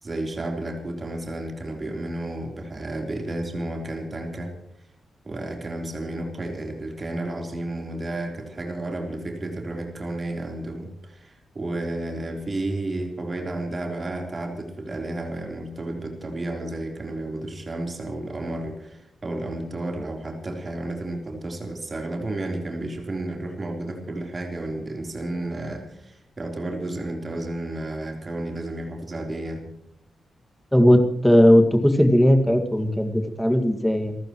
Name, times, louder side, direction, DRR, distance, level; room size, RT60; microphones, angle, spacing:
voice 1, 0.0-4.5 5.2-29.6, right 1 dB, 30° right, 2 dB, 3.8 m, -32 dB
voice 2, 30.7-34.2, equal, 5° left, 5 dB, 2.0 m, -18 dB
28.5 x 14.5 x 3.1 m, 0.80 s
wide cardioid pair, 150°, 0 cm